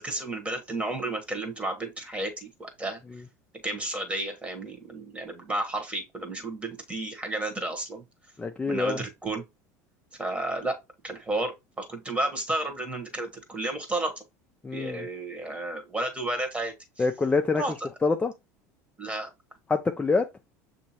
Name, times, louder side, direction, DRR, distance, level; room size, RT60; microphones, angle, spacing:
voice 1, 0.0-3.0 3.6-8.0 8.7-9.4 10.2-10.7 11.0-14.1 14.7-16.7 17.6-17.9 19.0-19.3, right 2 dB, 15° right, 1.3 m, -32 dB
voice 2, 8.4-9.0 14.6-15.1 17.0-17.6 18.0-18.3 19.7-20.3, left 4 dB, 15° left, 0.4 m, -25 dB
6.5 x 2.7 x 2.9 m
supercardioid pair, 95°, 9 cm